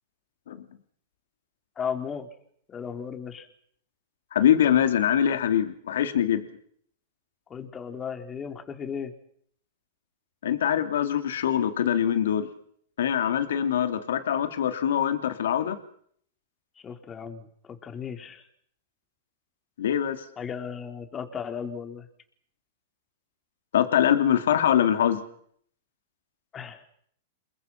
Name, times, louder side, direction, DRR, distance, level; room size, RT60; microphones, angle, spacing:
voice 1, 1.8-2.3 2.7-3.5 7.5-9.1 16.8-18.5 20.4-22.1 26.5-26.9, left 7 dB, 25° left, 6 dB, 4.0 m, -35 dB
voice 2, 4.3-6.4 10.4-12.5 13.0-15.8 19.8-20.2 23.7-25.2, left 9 dB, 75° left, 8 dB, 2.8 m, -23 dB
29.5 x 21.5 x 6.0 m, 0.64 s
hypercardioid pair, 115°, 0 cm